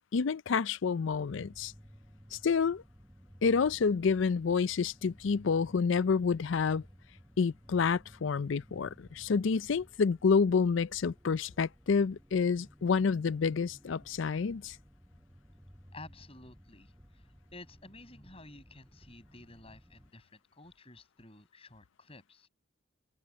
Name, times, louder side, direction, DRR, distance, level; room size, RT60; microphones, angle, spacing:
voice 1, 0.0-1.7 2.3-2.8 3.4-6.8 7.4-14.8, left 5 dB, 70° left, 0.5 m, -28 dB
sound 1, 1.1-20.1, equal, 5° right, 6.6 m, -57 dB
voice 2, 15.9-22.5, left 2 dB, 30° left, 7.8 m, -52 dB
head